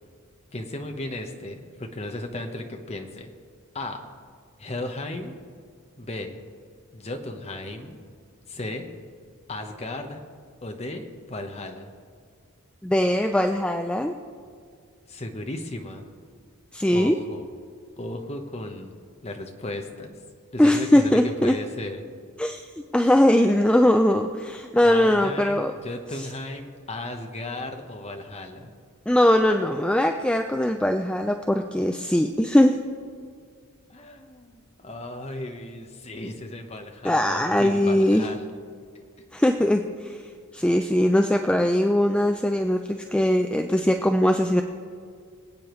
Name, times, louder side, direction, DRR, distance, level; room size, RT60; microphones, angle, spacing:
voice 1, 0.5-3.3 3.7-4.0 4.6-5.3 6.0-6.4 6.9-8.0 8.5-8.8 9.5-10.2 10.6-11.9 15.1-16.1 16.9-17.5 18.0-18.9 19.2-20.1 20.5-22.0 24.8-28.7 33.9-38.5, left 1 dB, 30° left, 4 dB, 1.0 m, -35 dB
voice 2, 12.8-14.1 16.7-17.2 20.6-21.5 22.4-25.7 29.1-32.7 37.0-38.3 39.3-40.2 40.5-44.6, left 1 dB, 5° left, 5 dB, 0.3 m, -21 dB
25.0 x 8.7 x 3.1 m, 2.1 s
head